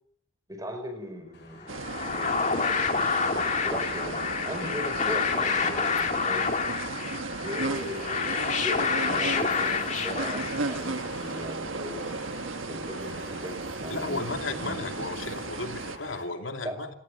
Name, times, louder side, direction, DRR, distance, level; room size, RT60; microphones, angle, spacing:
voice 1, 0.5-1.8 2.1-2.5 3.6-6.5 7.4-12.2 12.7-14.2 14.6-14.8 16.6-16.8, equal, 20° right, 8 dB, 5.0 m, -38 dB
sound 1, 1.3-16.2, left 2 dB, 60° left, 7.6 m, -46 dB
sound 2, 1.7-11.0, left 5 dB, 35° left, 2.3 m, -28 dB
sound 3, 1.7-16.0, right 3 dB, 85° right, 1.3 m, -35 dB
voice 2, 13.9-16.9, left 3 dB, 85° left, 5 dB, 2.7 m, -34 dB
28.5 x 17.5 x 6.4 m, 0.64 s
head